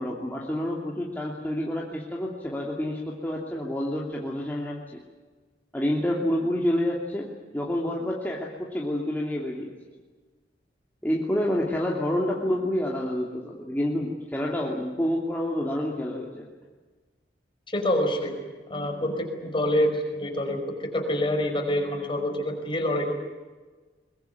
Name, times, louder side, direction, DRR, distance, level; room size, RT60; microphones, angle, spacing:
voice 1, 0.0-4.8 5.7-7.3 7.5-9.7 11.0-16.5, left 1 dB, 10° left, -3 dB, 2.8 m, -28 dB
voice 2, 17.7-18.4 18.7-23.1, left 1 dB, 30° left, 4 dB, 5.4 m, -26 dB
23.0 x 22.0 x 9.4 m, 1.3 s
head